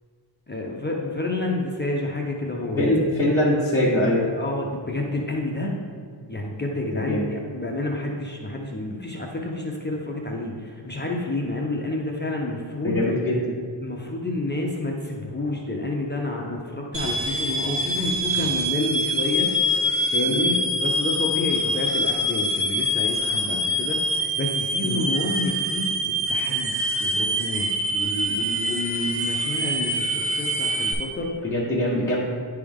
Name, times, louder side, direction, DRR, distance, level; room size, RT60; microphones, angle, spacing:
voice 1, 0.5-2.8 4.4-5.8 6.3-13.0 13.8-19.5 20.1-26.0 26.3-26.7 27.0-31.4, left 2 dB, 25° left, -1 dB, 0.6 m, -29 dB
voice 2, 2.6-4.2 6.9-7.2 12.8-13.4 20.3-20.5 24.8-25.0 31.4-32.2, left 1 dB, 5° left, -9 dB, 1.3 m, -22 dB
sound 1, 16.9-30.9, equal, 30° right, 0.8 m, -25 dB
10.0 x 3.4 x 3.5 m, 2.1 s
wide cardioid pair, 120°, 47 cm